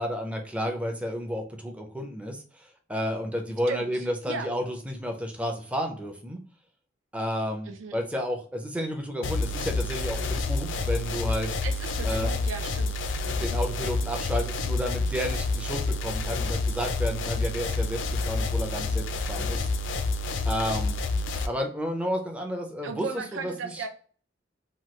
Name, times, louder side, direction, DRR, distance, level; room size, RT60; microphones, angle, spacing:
voice 1, 0.0-2.4 2.9-6.4 7.1-11.5 12.0-12.3 13.4-18.0 18.3-19.6 20.5-21.0 21.5-23.1 23.4-23.8, equal, 5° right, 0.4 m, -31 dB
voice 2, 3.7-4.5 7.7-8.0 11.6-13.0 22.8-23.9, right 5 dB, 85° right, 0.5 m, -36 dB
sound 1, 9.2-21.5, left 3 dB, 70° left, 0.4 m, -28 dB
2.9 x 2.3 x 3.0 m
head